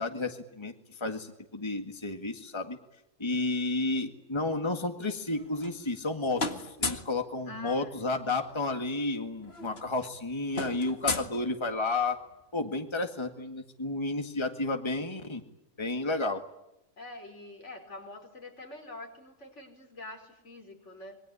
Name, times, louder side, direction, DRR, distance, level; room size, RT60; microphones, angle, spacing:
voice 1, 0.0-2.8 3.2-12.2 12.5-15.4 15.8-16.4, left 2 dB, 20° left, 6 dB, 2.0 m, -32 dB
sound 1, 5.3-6.1 6.4-7.2 8.6-8.7 8.9-9.1 9.4-12.0, left 3 dB, 55° left, 2.2 m, -35 dB
voice 2, 7.5-7.9 8.5-8.6 10.0-10.1 10.7-10.8 17.0-21.2, left 2 dB, 70° left, 3 dB, 5.2 m, -46 dB
26.5 x 23.0 x 9.8 m, 0.87 s
omnidirectional pair, 1.3 m